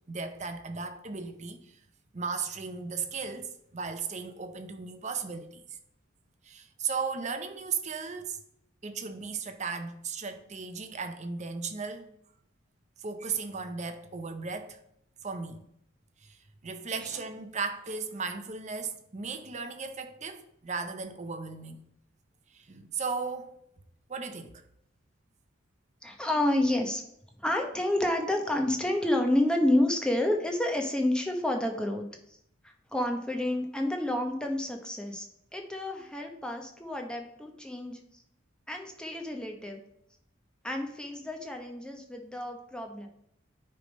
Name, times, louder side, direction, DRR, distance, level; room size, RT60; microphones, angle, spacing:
voice 1, 0.1-1.7 2.1-5.6 6.4-8.4 8.8-12.1 13.0-14.8 15.2-15.6 16.2-16.4 16.6-21.8 22.5-23.6 24.1-24.6, right 5 dB, 35° right, 0.7 m, -36 dB
voice 2, 26.0-27.0 27.4-32.4 32.6-35.3 35.5-38.0 38.7-39.8 40.6-43.1, left 1 dB, 5° left, 0.9 m, -29 dB
9.6 x 3.4 x 5.2 m
head